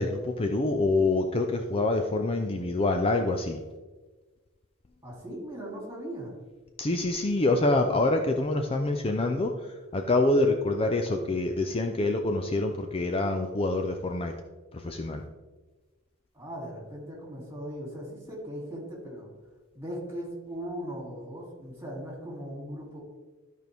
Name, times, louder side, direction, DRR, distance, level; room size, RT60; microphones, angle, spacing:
voice 1, 0.0-3.6 6.8-9.5 9.9-14.3 14.7-15.2, left 2 dB, 30° left, 4 dB, 0.5 m, -26 dB
voice 2, 5.0-6.3 16.3-19.3 19.7-23.0, equal, 15° right, -3 dB, 2.7 m, -38 dB
13.0 x 4.6 x 3.4 m, 1.3 s
head